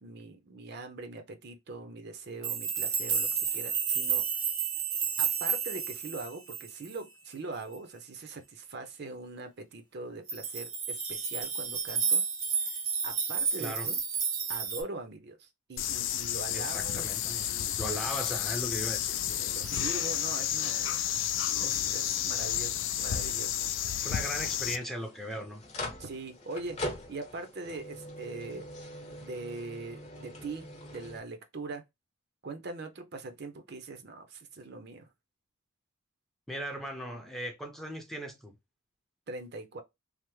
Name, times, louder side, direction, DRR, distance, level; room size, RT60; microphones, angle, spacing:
voice 1, 0.0-4.3 5.2-12.2 12.6-12.8 13.0-14.0 14.5-17.1 17.5-17.8 19.5-21.3 21.6-24.1 26.0-26.8 27.1-28.7 29.2-31.8 32.4-35.1 39.3-39.8, right 3 dB, 50° right, 0.5 m, -42 dB
sound 1, 2.4-6.9 10.3-14.8, right 6 dB, 75° right, 0.8 m, -31 dB
voice 2, 13.6-13.9 16.5-19.2 24.0-25.6 36.5-38.5, equal, ahead, 0.5 m, -38 dB
sound 2, 15.8-24.8, left 10 dB, 65° left, 0.4 m, -31 dB
sound 3, 21.5-31.2, left 1 dB, 30° left, 0.8 m, -44 dB
3.2 x 2.0 x 3.0 m
head